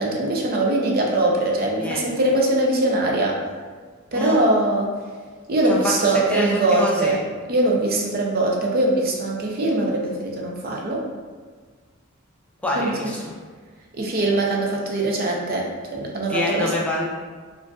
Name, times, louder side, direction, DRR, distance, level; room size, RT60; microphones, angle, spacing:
voice 1, 0.0-3.4 4.1-4.9 5.5-7.2 7.5-11.0 12.7-13.1 14.0-16.7, right 2 dB, 45° right, -1 dB, 0.6 m, -22 dB
voice 2, 6.0-7.2 12.6-13.3 16.3-17.1, left 1 dB, 5° left, -4 dB, 0.4 m, -26 dB
4.9 x 2.6 x 2.3 m, 1.5 s
head